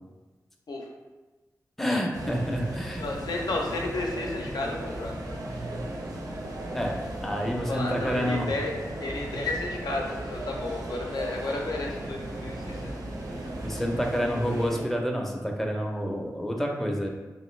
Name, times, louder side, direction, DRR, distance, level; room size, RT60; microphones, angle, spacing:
voice 1, 1.8-3.0 6.7-8.5 13.6-17.1, equal, 5° left, 0 dB, 0.5 m, -28 dB
sound 1, 2.1-14.8, right 1 dB, 65° right, 0.6 m, -36 dB
voice 2, 3.0-5.2 7.6-8.7 9.0-12.9, left 2 dB, 80° left, 0 dB, 0.5 m, -32 dB
3.0 x 2.5 x 3.1 m, 1.2 s
wide cardioid pair, 70°, 7 cm